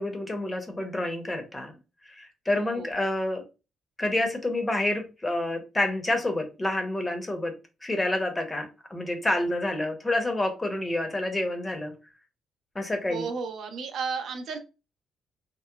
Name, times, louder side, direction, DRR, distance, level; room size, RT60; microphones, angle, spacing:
voice 1, 0.0-1.7 2.0-3.4 4.0-7.5 7.8-11.9 12.7-13.3, left 1 dB, 20° left, 5 dB, 0.7 m, -28 dB
voice 2, 2.6-2.9 13.1-14.6, right 5 dB, 70° right, 6 dB, 0.5 m, -33 dB
2.9 x 2.0 x 2.2 m, 0.29 s
cardioid pair, 90°, 0 cm